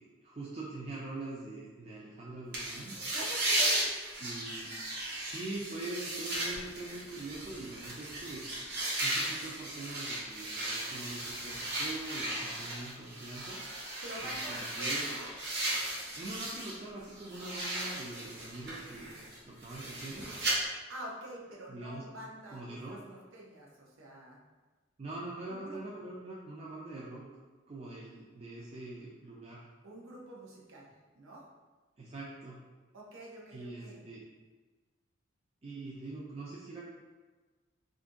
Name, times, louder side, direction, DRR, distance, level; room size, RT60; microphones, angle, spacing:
voice 1, 0.0-2.9 4.2-4.7 5.1-13.6 14.2-15.2 16.2-19.1 19.5-20.3 21.7-22.0 22.5-23.1 25.0-27.2 27.7-29.6 32.0-32.6 33.5-34.2 35.6-36.9, right 2 dB, 30° right, -6 dB, 0.4 m, -43 dB
sound 1, 2.5-16.8 17.1-20.5, right 1 dB, 50° right, 0.8 m, -36 dB
voice 2, 3.1-4.0 14.0-14.9 20.9-24.4 25.5-26.0 29.8-30.9 31.2-31.4 32.9-34.0, right 1 dB, 85° right, -3 dB, 0.7 m, -46 dB
2.6 x 2.5 x 3.7 m, 1.3 s
head